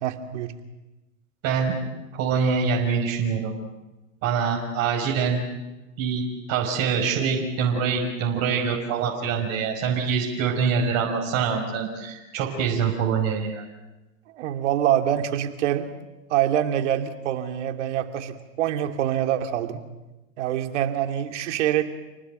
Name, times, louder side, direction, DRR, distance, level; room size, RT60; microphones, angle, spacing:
voice 1, 0.0-0.5 14.3-15.9 16.3-19.8 20.4-21.8, right 11 dB, 65° right, 7 dB, 2.9 m, -25 dB
voice 2, 1.4-1.7 2.1-3.5 4.2-5.4 6.0-6.2 6.5-13.6, right 6 dB, 40° right, -1 dB, 5.6 m, -24 dB
29.0 x 19.5 x 9.2 m, 1.1 s
hypercardioid pair, 135°, 39 cm